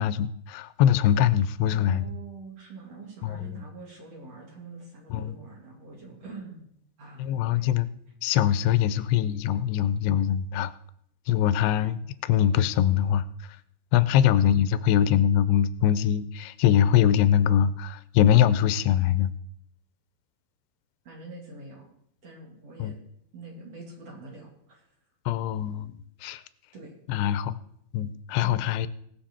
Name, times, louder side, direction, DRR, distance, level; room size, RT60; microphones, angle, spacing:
voice 1, 0.0-2.1 3.2-3.6 5.1-5.4 7.2-7.9 8.2-10.7 11.3-13.2 13.9-19.3 22.8-22.9 25.3-26.0 26.2-26.4 27.1-27.6 27.9-28.9, left 10 dB, 90° left, 15 dB, 2.7 m, -23 dB
voice 2, 1.7-6.7 7.0-7.7 14.1-14.4 21.0-21.9 22.2-22.9 23.3-24.9 26.7-26.9 28.4-28.7, right 3 dB, 45° right, 0 dB, 3.1 m, -44 dB
19.5 x 7.2 x 4.3 m, 0.72 s
omnidirectional pair, 4.6 m